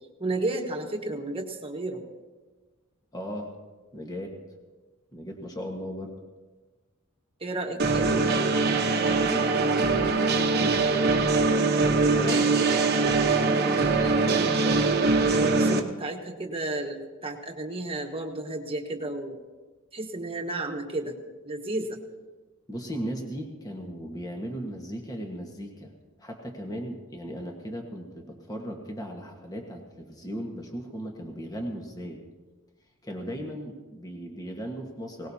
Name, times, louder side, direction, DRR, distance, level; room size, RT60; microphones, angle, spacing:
voice 1, 0.2-2.0 7.4-8.2 13.6-13.8 14.6-14.9 15.3-19.4 19.9-21.2 21.4-22.0, right 2 dB, 25° right, 3 dB, 1.4 m, -32 dB
voice 2, 3.1-3.5 3.9-4.3 5.1-6.2 8.9-9.8 10.5-11.1 12.0-14.5 22.7-25.9 26.2-32.2 33.0-35.3, equal, 20° left, 2 dB, 1.4 m, -37 dB
sound 1, 7.8-15.8, right 3 dB, 50° right, 1.1 m, -22 dB
20.5 x 18.5 x 2.8 m, 1.3 s
head